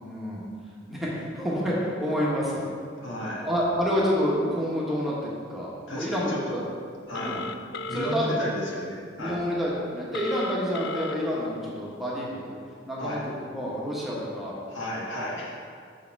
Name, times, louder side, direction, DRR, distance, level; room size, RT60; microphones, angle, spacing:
voice 1, 0.0-0.4 0.9-2.6 3.4-6.6 7.2-7.4 7.9-8.4 9.2-12.4 12.9-14.5, equal, ahead, -6 dB, 1.4 m, -28 dB
voice 2, 3.0-3.5 5.9-6.6 7.1-7.4 7.9-9.4 13.0-13.2 14.7-15.6, equal, 75° left, -4 dB, 1.6 m, -33 dB
Telephone, 7.1-8.2 10.1-11.1, left 4 dB, 60° left, 0.4 m, -34 dB
6.7 x 6.4 x 4.7 m, 2.1 s
head